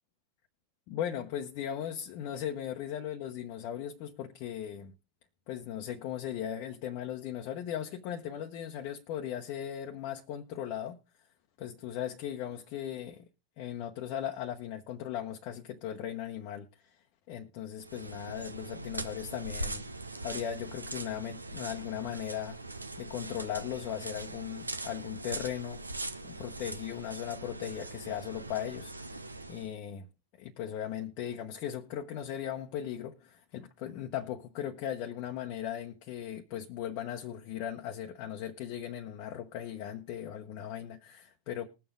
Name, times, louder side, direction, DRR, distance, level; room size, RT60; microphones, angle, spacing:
voice 1, 0.9-4.9 5.5-11.0 11.6-13.3 13.6-16.9 17.3-19.8 20.2-22.6 23.0-29.2 29.5-30.1 30.4-41.7, left 10 dB, 45° left, 1.0 m, -38 dB
sound 1, 17.8-29.7, right 2 dB, 80° right, 0.8 m, -41 dB
21.0 x 7.1 x 3.7 m
figure-of-eight pair, 90°, 0 cm